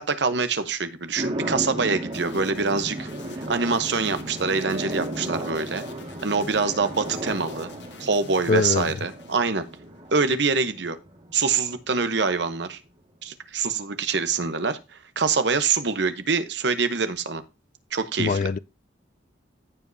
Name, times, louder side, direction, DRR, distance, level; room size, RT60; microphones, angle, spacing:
voice 1, 0.0-3.1 3.5-5.8 6.2-7.7 8.0-9.6 10.1-11.0 11.3-12.8 13.2-14.8 15.2-17.4 17.9-18.4, right 4 dB, 65° right, 1.0 m, -25 dB
sound 1, 1.2-11.5, right 1 dB, 30° right, 1.8 m, -35 dB
sound 2, 2.1-10.2, left 3 dB, 65° left, 1.2 m, -46 dB
voice 2, 8.5-9.0 18.2-18.6, left 4 dB, 40° left, 0.3 m, -23 dB
15.5 x 5.3 x 2.7 m
head